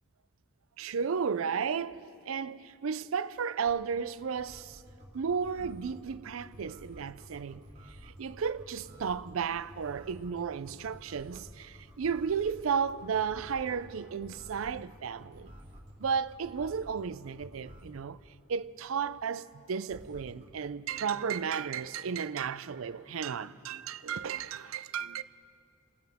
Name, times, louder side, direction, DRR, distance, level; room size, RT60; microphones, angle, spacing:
voice 1, 0.8-4.8 5.1-7.7 8.0-15.5 16.0-18.2 18.5-25.2, right 6 dB, 80° right, 0.5 m, -33 dB
sound 1, 3.6-18.0 19.9-20.5, equal, 30° right, 2.9 m, -51 dB
29.5 x 13.5 x 3.6 m
head